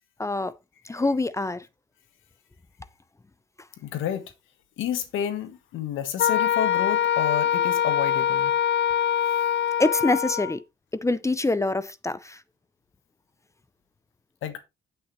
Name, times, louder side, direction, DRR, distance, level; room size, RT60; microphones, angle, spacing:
voice 1, 0.2-0.5 0.9-1.7 9.8-10.6 11.0-12.4, left 2 dB, 15° left, 0.6 m, -25 dB
voice 2, 3.8-4.2 4.8-8.5 14.4-14.6, left 9 dB, 85° left, 1.4 m, -30 dB
Wind instrument woodwind instrument, 6.2-10.6, left 9 dB, 65° left, 0.6 m, -23 dB
8.7 x 8.2 x 3.1 m
cardioid pair, 90°, 20 cm